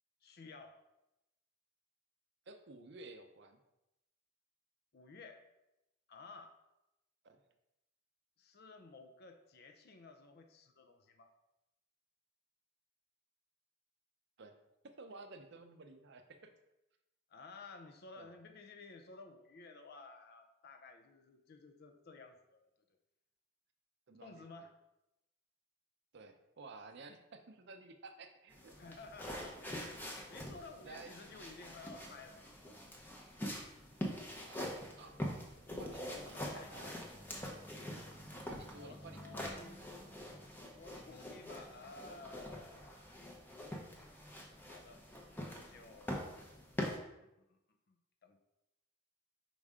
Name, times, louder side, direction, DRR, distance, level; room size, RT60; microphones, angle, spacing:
voice 1, 0.2-0.8 4.9-5.5 6.1-6.6 8.4-11.3 17.3-22.7 24.2-24.7 28.8-29.6 30.3-32.8 36.2-37.0 38.7-39.8 40.7-43.2 44.7-46.6 47.4-47.6 47.9-48.4, left 3 dB, 45° left, 5 dB, 0.5 m, -54 dB
voice 2, 2.5-3.6 7.2-7.4 14.4-14.6 14.8-16.5 18.2-18.4 24.1-24.5 26.1-28.8 29.3-29.5 30.8-31.1 34.5-34.6 35.0-35.2 35.8-36.9 38.5-39.5 41.3-41.5, right 3 dB, 55° right, 7 dB, 0.5 m, -53 dB
sound 1, 28.5-47.0, equal, 10° left, 0.7 m, -45 dB
5.3 x 4.9 x 3.6 m, 0.91 s
head